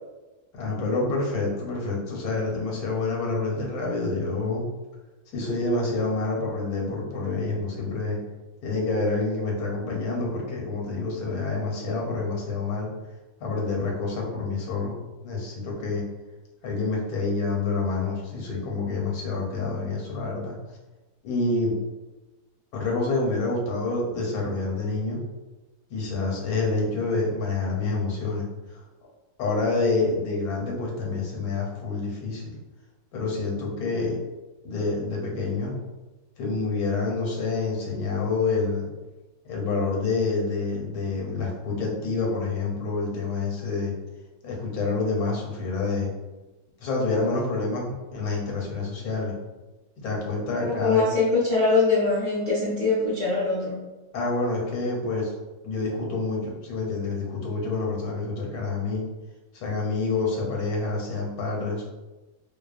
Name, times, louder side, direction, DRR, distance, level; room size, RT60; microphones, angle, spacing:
voice 1, 0.5-4.6 5.3-8.2 8.6-12.9 13.4-16.0 16.6-20.6 21.2-21.7 22.7-25.2 25.9-28.8 29.4-32.5 33.1-34.2 34.6-35.7 36.4-38.9 39.5-43.9 44.4-46.1 46.8-49.4 50.0-51.0 54.1-55.3 55.6-59.0 59.5-61.8, left 3 dB, 80° left, -2 dB, 1.2 m, -27 dB
voice 2, 50.6-53.7, left 3 dB, 50° left, -10 dB, 0.4 m, -23 dB
2.7 x 2.1 x 2.4 m, 1.1 s
omnidirectional pair, 1.6 m